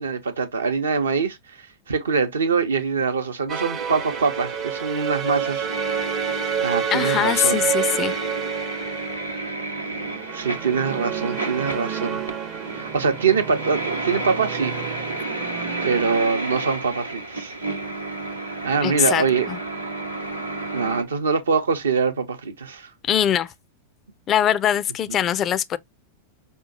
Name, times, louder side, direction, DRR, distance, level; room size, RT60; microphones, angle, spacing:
voice 1, 0.0-1.4 1.9-5.7 6.6-7.7 10.3-12.2 12.7-14.8 15.8-17.5 18.6-19.5 20.7-22.9 25.1-25.2, right 5 dB, 70° right, 0.8 m, -23 dB
sound 1, 3.5-16.3, right 8 dB, 30° right, 0.6 m, -30 dB
sound 2, 3.7-21.0, right 2 dB, 85° right, 0.9 m, -32 dB
voice 2, 6.9-8.1 18.8-19.6 23.0-23.5 24.3-25.8, left 10 dB, 30° left, 0.4 m, -22 dB
5.3 x 2.3 x 2.7 m
figure-of-eight pair, 90°, 0 cm